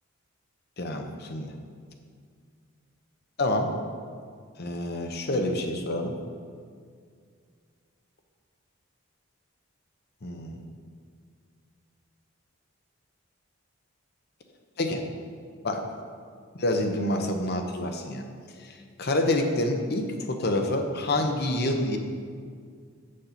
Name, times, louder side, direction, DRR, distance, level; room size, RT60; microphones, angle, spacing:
voice 1, 0.8-1.5 3.4-3.7 4.6-6.2 10.2-10.6 14.8-15.0 15.6-15.8 16.5-18.2 18.6-22.0, left 1 dB, 55° left, 5 dB, 0.9 m, -27 dB
8.2 x 6.5 x 5.8 m, 2.1 s
head